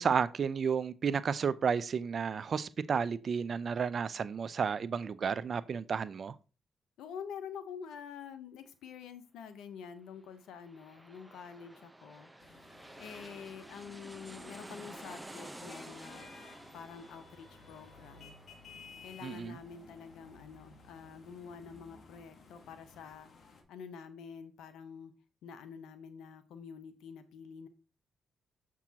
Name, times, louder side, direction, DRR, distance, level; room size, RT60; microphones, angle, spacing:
voice 1, 0.0-6.3 19.2-19.6, right 6 dB, 55° right, 0.5 m, -32 dB
voice 2, 7.0-12.3 13.0-16.3 16.7-18.4 19.0-23.3 23.7-25.1 25.4-27.7, left 7 dB, 80° left, 0.8 m, -47 dB
sound 1, 10.3-21.6 22.0-22.1, right 1 dB, 10° right, 0.8 m, -52 dB
sound 2, 12.4-23.6, left 4 dB, 60° left, 1.4 m, -56 dB
7.1 x 6.0 x 2.9 m
supercardioid pair, 50°, 0 cm